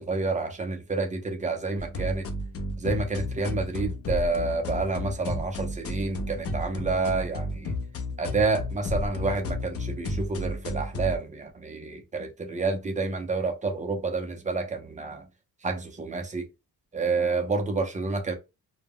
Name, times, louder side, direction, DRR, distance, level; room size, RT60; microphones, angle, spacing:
voice 1, 0.0-2.3 2.8-7.7 8.2-15.2 15.6-16.5 16.9-18.3, right 3 dB, 20° right, 0.4 m, -29 dB
sound 1, 1.8-11.2, left 2 dB, 40° left, 0.4 m, -32 dB
2.1 x 2.0 x 3.4 m
cardioid pair, 140°, 40 cm